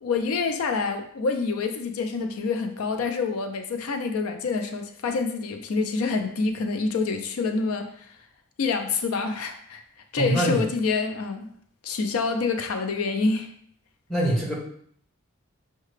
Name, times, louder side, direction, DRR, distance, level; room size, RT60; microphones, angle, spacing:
voice 1, 0.0-8.1 8.6-9.8 10.1-11.5 11.8-13.5, left 4 dB, 85° left, 7 dB, 0.4 m, -27 dB
voice 2, 10.2-10.6 14.1-14.6, right 1 dB, ahead, -5 dB, 0.9 m, -23 dB
5.6 x 2.2 x 3.2 m, 0.62 s
head